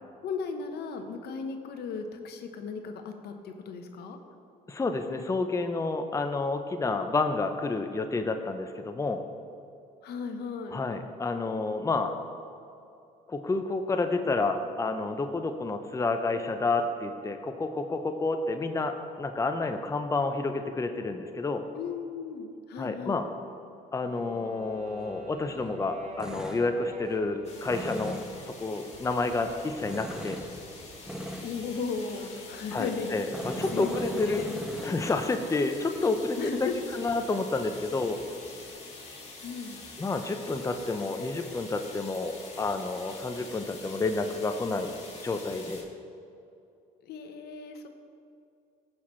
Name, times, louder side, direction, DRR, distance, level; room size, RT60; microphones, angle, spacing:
voice 1, 0.2-4.2 10.0-10.8 21.8-23.2 31.4-33.2 33.6-34.6 36.4-36.7 39.4-39.8 47.0-47.9, left 5 dB, 65° left, 6 dB, 1.0 m, -36 dB
voice 2, 4.7-9.2 10.7-12.2 13.3-21.6 22.8-23.3 23.9-28.2 28.5-30.4 32.7-34.4 34.8-38.2 40.0-44.9 45.2-45.8, left 3 dB, 15° left, 7 dB, 0.6 m, -30 dB
Wind instrument woodwind instrument, 24.0-29.0, equal, 40° right, 1.4 m, -47 dB
Tools, 24.6-38.7, right 1 dB, 5° right, 1.0 m, -43 dB
sound 1, 27.4-45.8, left 3 dB, 35° left, 2.4 m, -46 dB
15.5 x 6.0 x 3.2 m, 2.6 s
supercardioid pair, 75°, 18 cm